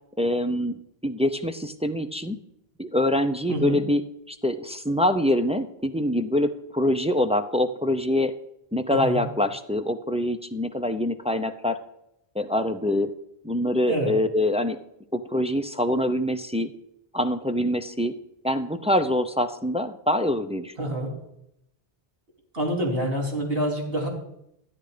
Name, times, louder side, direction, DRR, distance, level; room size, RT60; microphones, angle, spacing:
voice 1, 0.2-2.4 2.8-4.0 4.3-8.3 8.7-11.8 12.3-13.1 13.4-14.8 15.1-16.7 17.1-18.1 18.4-20.7, left 1 dB, 10° right, 7 dB, 0.4 m, -25 dB
voice 2, 8.9-9.2 13.9-14.1 20.8-21.1 22.5-24.1, right 1 dB, 60° right, 0 dB, 3.2 m, -27 dB
12.0 x 10.5 x 5.0 m, 0.79 s
omnidirectional pair, 1.1 m